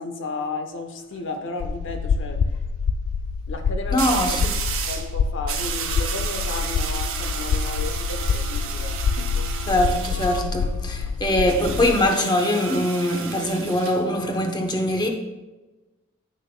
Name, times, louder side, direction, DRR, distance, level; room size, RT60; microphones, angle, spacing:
voice 1, 0.0-2.4 3.5-4.4 4.9-9.0, left 3 dB, 60° left, 0.9 m, -33 dB
sound 1, 0.8-1.2 4.0-5.1 5.5-10.5 11.5-14.0, right 7 dB, 65° right, 0.8 m, -32 dB
sound 2, 1.6-12.1, left 5 dB, 80° left, 0.3 m, -26 dB
voice 2, 3.9-4.5 9.7-15.1, left 1 dB, 20° left, 0.8 m, -22 dB
10.5 x 6.3 x 2.2 m
head